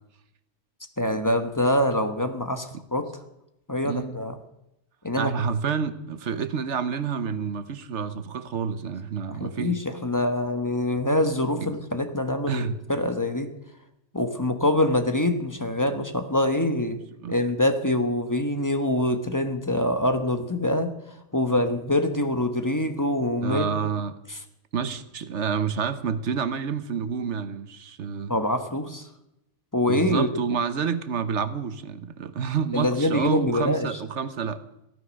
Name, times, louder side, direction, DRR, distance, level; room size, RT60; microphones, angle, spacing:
voice 1, 1.0-3.0 3.7-4.4 5.0-5.3 9.3-13.5 14.1-17.0 17.3-20.9 21.3-23.7 28.3-29.1 29.7-30.3 32.7-33.9, left 1 dB, 15° left, 7 dB, 1.2 m, -25 dB
voice 2, 3.8-4.1 5.2-9.8 11.6-11.7 12.5-12.7 17.2-17.4 23.4-24.1 24.7-28.3 29.9-34.6, right 6 dB, 80° right, 12 dB, 1.3 m, -29 dB
15.5 x 13.0 x 6.4 m, 0.86 s
omnidirectional pair, 1.2 m